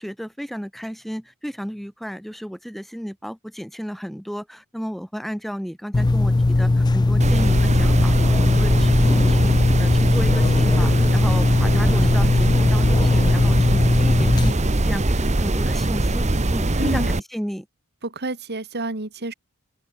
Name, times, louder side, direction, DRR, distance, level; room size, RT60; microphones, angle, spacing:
voice 1, 0.0-17.7, equal, ahead, 3.3 m, -33 dB
sound 1, 5.9-14.5, left 2 dB, 20° left, 0.3 m, -18 dB
sound 2, 7.2-17.2, right 2 dB, 30° right, 1.2 m, -22 dB
voice 2, 16.8-17.1 18.0-19.3, right 2 dB, 50° right, 2.4 m, -29 dB
open air
head